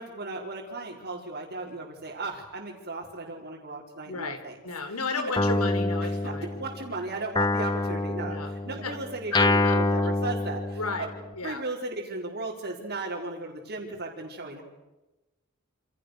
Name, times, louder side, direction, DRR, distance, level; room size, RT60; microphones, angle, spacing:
voice 1, 0.0-4.6 5.2-5.3 6.0-11.1 11.4-14.6, right 2 dB, 50° right, -4 dB, 4.7 m, -36 dB
voice 2, 4.0-6.5 8.2-8.5 8.8-9.0 9.3-10.1 10.8-11.1 11.4-11.6, left 3 dB, 80° left, 8 dB, 4.3 m, -33 dB
Guitar, 5.4-6.9 7.4-11.2, left 2 dB, 20° left, 1.2 m, -26 dB
29.5 x 27.5 x 6.8 m, 1.0 s
head